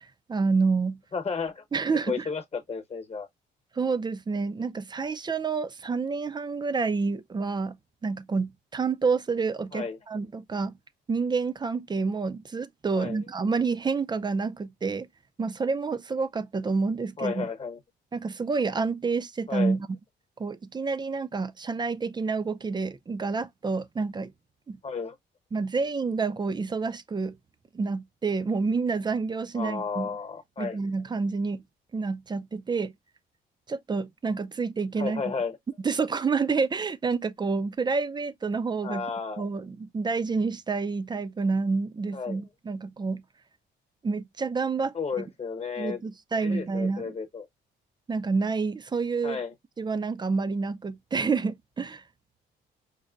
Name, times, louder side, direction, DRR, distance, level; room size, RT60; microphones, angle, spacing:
voice 1, 0.0-1.0 1.7-2.2 3.8-7.8 8.0-10.8 11.1-15.1 15.4-17.5 18.1-20.0 20.4-24.3 24.7-24.8 25.5-27.4 27.7-30.1 30.6-31.6 31.9-32.9 33.7-35.3 35.8-39.1 39.4-43.2 44.0-45.3 45.8-47.1 48.1-49.4 49.8-52.0, right 4 dB, 20° right, 0.4 m, -28 dB
voice 2, 1.1-1.6 2.1-3.3 9.7-10.0 12.9-13.2 17.2-17.8 19.5-19.7 24.8-25.1 29.5-30.8 35.0-35.6 38.8-39.4 42.1-42.4 44.9-46.0 46.4-47.5 49.2-49.5, left 5 dB, 30° left, 1.0 m, -33 dB
5.2 x 2.1 x 2.4 m
cardioid pair, 90°, 20 cm